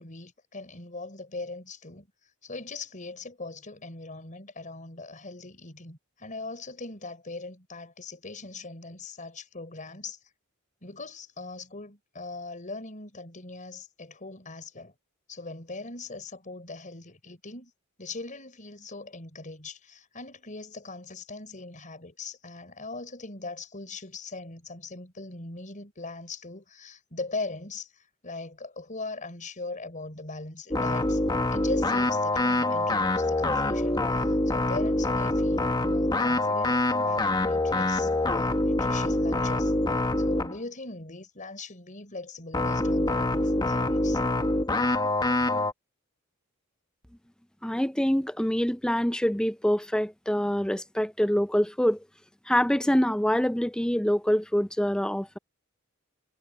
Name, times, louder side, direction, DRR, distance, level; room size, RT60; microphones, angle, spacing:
voice 1, 0.0-2.1 2.4-10.2 10.8-14.9 15.3-17.7 18.0-31.2 31.5-44.2, left 3 dB, 40° left, 4.9 m, -40 dB
sound 1, 30.7-40.6 42.5-45.7, left 2 dB, 20° left, 1.3 m, -25 dB
voice 2, 47.6-52.0 52.5-55.4, equal, 5° left, 0.5 m, -25 dB
head